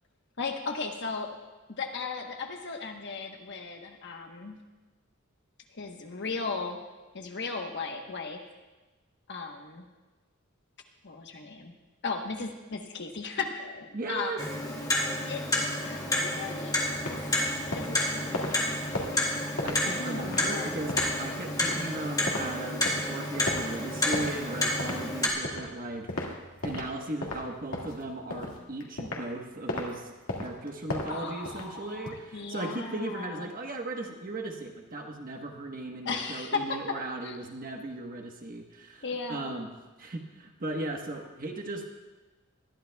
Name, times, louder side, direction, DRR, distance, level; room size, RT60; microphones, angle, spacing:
voice 1, 0.4-1.3 1.7-4.6 5.7-6.8 7.1-8.5 9.3-9.9 11.0-11.7 12.0-14.4 15.3-15.4 15.8-17.2 17.7-18.8 19.8-20.8 31.1-33.5 36.0-37.0 37.2-37.4 39.0-39.5, left 4 dB, 55° left, 3 dB, 1.1 m, -36 dB
voice 2, 13.9-14.4 19.6-26.3 26.6-30.1 30.4-39.0 39.3-39.7 40.0-41.8, right 2 dB, 40° right, 2 dB, 1.3 m, -37 dB
Clock, 14.4-25.3, left 1 dB, 20° left, 2.2 m, -30 dB
sound 1, 16.8-26.9 27.2-29.3 29.7-29.9 30.3-32.1, left 2 dB, 90° left, 2.1 m, -36 dB
21.0 x 13.5 x 2.3 m, 1.2 s
head